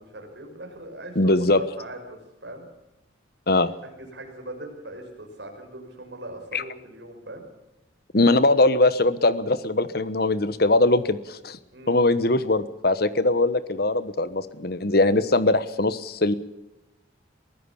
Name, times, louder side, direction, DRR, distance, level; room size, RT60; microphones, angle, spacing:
voice 1, 0.0-2.7 3.8-7.5 11.7-12.2, right 1 dB, 65° right, 3 dB, 6.0 m, -40 dB
voice 2, 1.1-1.6 3.5-3.7 6.5-6.6 8.1-11.6 11.9-16.3, left 2 dB, 55° left, 14 dB, 1.2 m, -21 dB
23.0 x 15.5 x 7.1 m, 0.95 s
head